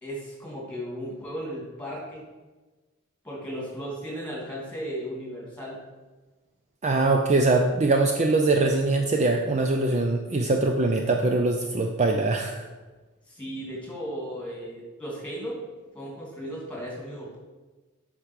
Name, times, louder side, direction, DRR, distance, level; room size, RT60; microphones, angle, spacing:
voice 1, 0.0-2.3 3.2-5.8 13.3-15.6 15.9-17.4, equal, 5° left, -4 dB, 2.8 m, -36 dB
voice 2, 6.8-12.7, right 2 dB, 35° right, 3 dB, 0.5 m, -22 dB
8.4 x 5.9 x 4.7 m, 1.2 s
head